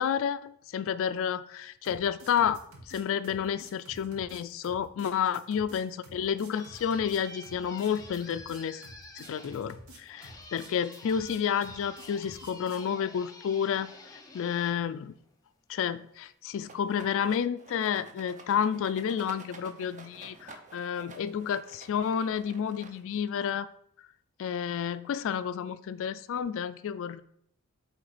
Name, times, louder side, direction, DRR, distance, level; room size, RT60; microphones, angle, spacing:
voice 1, 0.0-2.6 2.9-8.8 9.2-13.9 14.3-15.1 15.7-23.7 24.4-27.2, left 8 dB, 65° left, 13 dB, 0.3 m, -30 dB
sound 1, 1.8-12.9, right 1 dB, 75° right, 1.2 m, -50 dB
sound 2, 6.0-15.7, left 3 dB, 15° left, 0.8 m, -50 dB
Rattle, 16.6-23.3, right 3 dB, 35° right, 0.8 m, -51 dB
7.9 x 3.3 x 4.9 m, 0.67 s
head